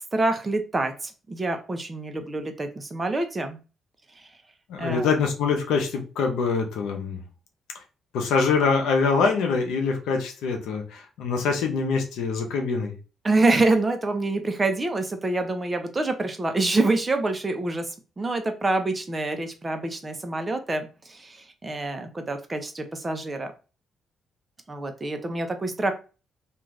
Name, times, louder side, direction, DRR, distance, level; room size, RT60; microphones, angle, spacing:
voice 1, 0.1-3.6 4.8-5.1 13.2-23.5 24.7-25.9, right 2 dB, 25° right, 7 dB, 0.6 m, -26 dB
voice 2, 4.7-7.2 8.1-13.0, left 5 dB, 85° left, 3 dB, 0.7 m, -24 dB
2.5 x 2.3 x 3.1 m, 0.33 s
cardioid pair, 90°, 0 cm